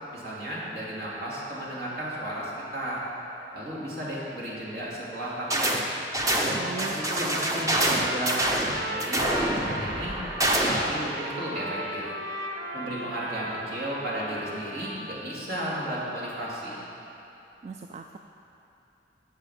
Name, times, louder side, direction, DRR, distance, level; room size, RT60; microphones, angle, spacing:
voice 1, 0.1-3.1 3.5-5.8 6.4-8.6 8.8-10.2 10.6-12.1 12.7-16.8, right 1 dB, 60° right, -6 dB, 2.6 m, -34 dB
sound 1, 5.5-5.8 6.1-11.0, right 1 dB, 20° right, 0.8 m, -26 dB
voice 2, 6.5-7.0 17.6-18.2, right 4 dB, 40° right, 5 dB, 0.3 m, -38 dB
Trumpet, 6.8-15.2, right 1 dB, 80° right, 1.0 m, -37 dB
9.0 x 7.6 x 7.0 m, 2.9 s
head